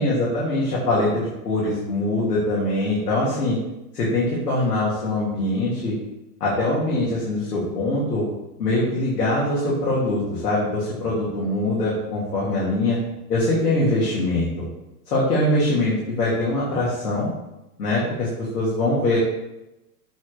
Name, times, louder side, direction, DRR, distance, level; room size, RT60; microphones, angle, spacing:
voice 1, 0.0-3.6 3.9-6.0 6.4-8.3 8.6-13.0 13.3-14.6 15.1-17.3 17.8-19.2, left 2 dB, 90° left, -6 dB, 3.2 m, -23 dB
8.2 x 4.6 x 6.8 m, 0.95 s
hypercardioid pair, 140°, 46 cm